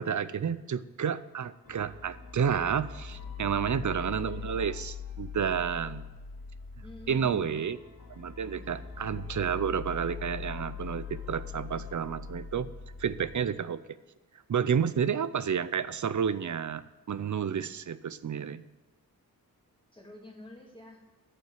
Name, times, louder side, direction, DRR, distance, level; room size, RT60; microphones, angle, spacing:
voice 1, 0.0-6.1 7.1-7.8 8.1-12.7 13.0-13.8 14.5-18.6, right 7 dB, 55° right, 15 dB, 0.5 m, -30 dB
sound 1, 1.6-13.4, left 7 dB, 70° left, 2.7 m, -42 dB
voice 2, 6.8-7.6 8.5-8.8 19.9-21.0, left 2 dB, 15° left, 0 dB, 2.3 m, -48 dB
8.6 x 7.7 x 9.0 m, 1.2 s
wide cardioid pair, 115°, 35 cm